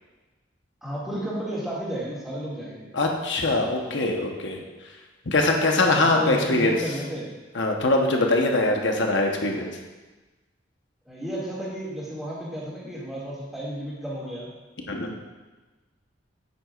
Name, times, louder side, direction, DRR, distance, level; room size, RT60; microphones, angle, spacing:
voice 1, 0.8-2.9 3.8-4.2 5.8-7.3 9.5-9.7 11.1-14.5, right 1 dB, ahead, -8 dB, 2.3 m, -33 dB
voice 2, 2.9-4.6 5.3-6.8 7.5-9.7 14.9-15.1, left 2 dB, 75° left, 1 dB, 1.1 m, -22 dB
9.2 x 8.4 x 2.5 m, 1.2 s
head